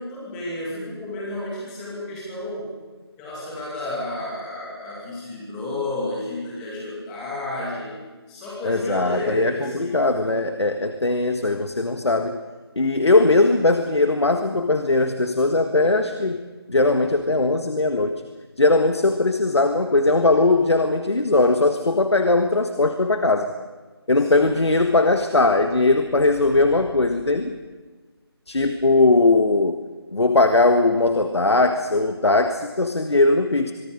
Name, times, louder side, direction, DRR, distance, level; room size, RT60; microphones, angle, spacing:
voice 1, 0.0-2.7 3.2-7.9 8.3-10.2 24.2-24.5, left 2 dB, 5° left, -5 dB, 2.5 m, -31 dB
voice 2, 8.6-12.4 12.7-16.4 16.7-18.2 18.6-23.5 24.1-27.5 28.5-29.8 30.1-33.7, left 2 dB, 85° left, 7 dB, 1.7 m, -19 dB
24.0 x 23.5 x 5.2 m, 1.3 s
figure-of-eight pair, 175°, 14 cm